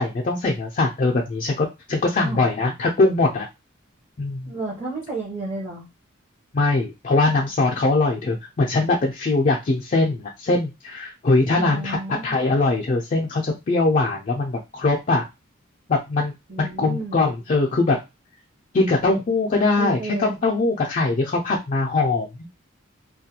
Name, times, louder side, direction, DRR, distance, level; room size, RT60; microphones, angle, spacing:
voice 1, 0.0-3.5 4.2-4.5 6.5-15.2 15.9-16.3 16.6-18.0 18.7-22.3, left 3 dB, 40° left, -1 dB, 0.4 m, -21 dB
voice 2, 4.4-5.8 11.6-12.4 16.5-17.2 19.8-20.4, right 3 dB, 35° right, -3 dB, 0.8 m, -32 dB
2.3 x 2.2 x 2.8 m, 0.24 s
head